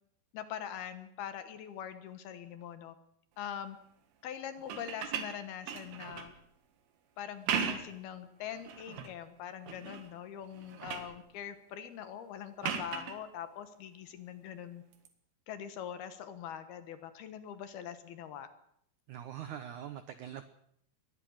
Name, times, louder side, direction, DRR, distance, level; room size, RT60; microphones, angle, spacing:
voice 1, 0.3-3.0 3.4-3.8 4.2-6.3 7.2-14.8 15.5-18.5, left 9 dB, 70° left, 11 dB, 3.0 m, -43 dB
sound 1, 4.6-6.4 7.3-8.0 8.5-9.1 9.7-10.1 10.4-11.2 12.6-13.2 14.9-15.1, right 7 dB, 70° right, 3.8 m, -37 dB
voice 2, 19.1-20.4, right 10 dB, 90° right, 11 dB, 1.7 m, -43 dB
22.5 x 19.0 x 6.5 m, 0.70 s
omnidirectional pair, 4.9 m